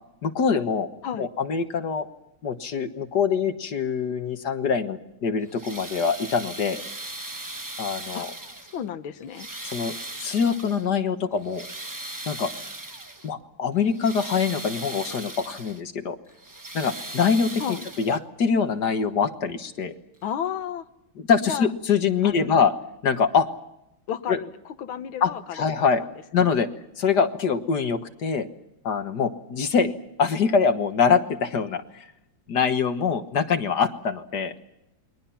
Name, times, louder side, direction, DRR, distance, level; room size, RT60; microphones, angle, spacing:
voice 1, 0.2-0.9 1.2-2.1 2.4-6.8 7.8-8.3 9.6-11.7 12.3-12.5 13.2-16.2 16.7-17.6 18.0-19.9 21.2-22.7 23.0-23.5 24.3-24.4 25.2-26.0 26.3-26.7 27.0-28.5 28.8-29.9 30.2-32.1 32.5-34.5, left 6 dB, 55° left, 8 dB, 1.8 m, -24 dB
sound 1, 5.4-8.9 9.3-10.9 11.3-13.3 13.8-15.8 16.3-18.4 19.5-19.6 20.2-20.3, right 2 dB, 25° right, 0.4 m, -38 dB
voice 2, 8.7-9.5 17.6-17.9 20.2-20.9 21.5-21.7 22.2-22.6 24.1-25.6 25.9-26.1 29.7-29.9, left 8 dB, 70° left, 11 dB, 1.9 m, -32 dB
29.5 x 22.0 x 5.8 m, 0.84 s
omnidirectional pair, 2.3 m